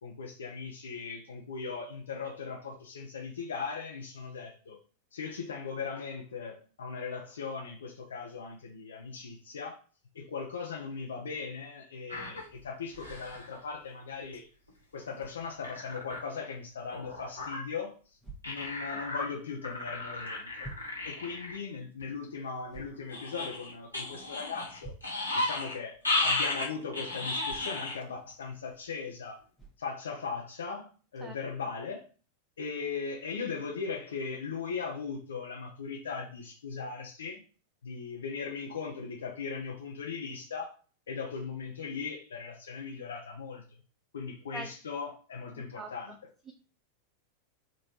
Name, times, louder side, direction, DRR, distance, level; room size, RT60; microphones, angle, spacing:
voice 1, 0.0-4.8 5.1-9.8 10.1-14.5 14.9-18.2 18.4-20.8 21.0-24.9 25.3-29.4 29.8-32.0 32.6-37.4 37.8-40.7 41.1-43.6 44.1-46.2, left 5 dB, 65° left, 0.7 m, -38 dB
sound 1, 12.1-12.4 12.9-13.5 14.3-14.4 14.7-14.8 15.2-15.3 15.6-16.2 16.9-17.6 18.4-19.3 19.6-21.6 22.0-22.1 23.1-25.8 26.0-28.0 28.4-28.5, left 2 dB, 85° left, 1.5 m, -34 dB
sound 2, 18.2-18.4 19.8-19.9 20.6-20.9 22.7-23.0 24.8-25.2 27.5-27.7 28.8-28.9 29.6-29.8, right 2 dB, ahead, 1.2 m, -46 dB
voice 2, 45.5-46.2 46.5-46.6, right 3 dB, 15° right, 0.4 m, -44 dB
3.7 x 2.5 x 4.5 m
figure-of-eight pair, 90°, 0 cm